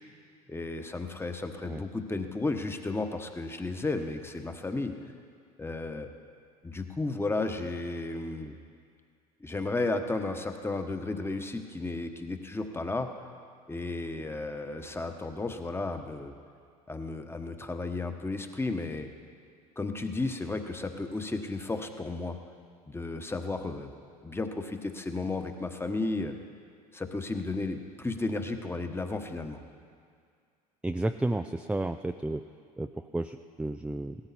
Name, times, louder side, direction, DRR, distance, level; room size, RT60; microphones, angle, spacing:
voice 1, 0.5-4.9 5.6-6.1 6.6-8.5 9.4-13.1 13.7-16.3 16.9-19.1 19.8-22.4 22.9-23.9 24.2-26.3 26.9-29.6, left 3 dB, 10° left, 6 dB, 1.2 m, -33 dB
voice 2, 30.8-32.5 32.8-34.2, right 2 dB, 5° right, 8 dB, 0.4 m, -32 dB
17.0 x 14.0 x 4.2 m, 2.2 s
hypercardioid pair, 75°, 20 cm